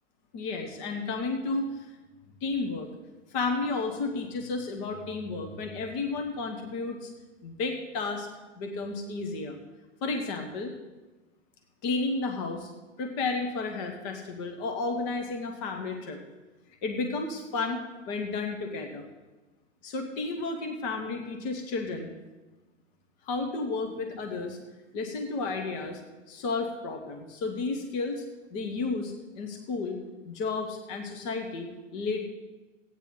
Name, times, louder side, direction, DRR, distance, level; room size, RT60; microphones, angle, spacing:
voice 1, 0.3-2.0 2.4-2.9 3.3-7.1 7.4-8.3 8.5-9.6 10.0-10.7 11.8-12.7 13.0-16.2 16.8-19.1 19.8-22.1 23.2-24.6 24.9-26.0 26.3-28.2 28.5-30.0 30.2-32.3, left 3 dB, 40° left, 4 dB, 1.4 m, -32 dB
15.5 x 9.3 x 4.0 m, 1.2 s
figure-of-eight pair, 105°, 38 cm